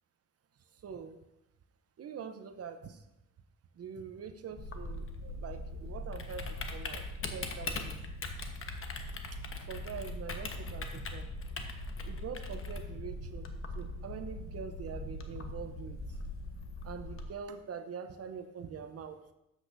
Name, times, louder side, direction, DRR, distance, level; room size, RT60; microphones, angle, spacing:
voice 1, 0.8-1.2 2.0-3.0 3.8-7.1 7.3-8.0 9.3-11.3 12.0-13.5 13.7-16.2 16.8-19.2, right 6 dB, 50° right, 9 dB, 0.8 m, -44 dB
Typing, 4.6-17.2, left 2 dB, 45° left, 1.2 m, -40 dB
12.0 x 8.2 x 2.7 m, 0.88 s
cardioid pair, 90°, 30 cm